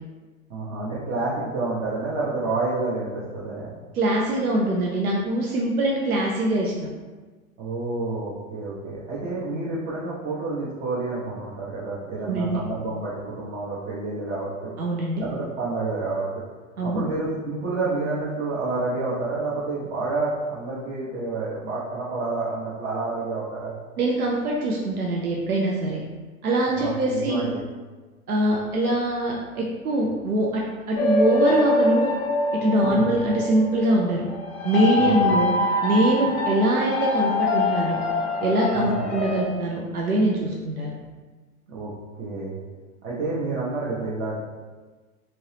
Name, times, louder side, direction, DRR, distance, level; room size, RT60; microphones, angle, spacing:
voice 1, 0.5-3.7 7.6-14.7 15.2-16.4 16.8-23.7 26.7-27.6 32.8-33.2 35.0-35.4 38.7-39.2 41.7-41.9 42.2-42.6 43.0-44.4, right 3 dB, 30° right, -7 dB, 0.7 m, -29 dB
voice 2, 4.0-6.7 12.3-12.6 14.8-15.3 16.8-17.0 24.0-26.0 26.4-27.5 28.3-32.1 32.6-34.3 34.6-35.5 35.8-38.0 38.4-40.9, right 1 dB, 85° right, -2 dB, 0.6 m, -23 dB
sound 1, 31.0-39.4, left 2 dB, 25° left, 0.4 m, -24 dB
2.8 x 2.6 x 3.2 m, 1.3 s
figure-of-eight pair, 95°, 43 cm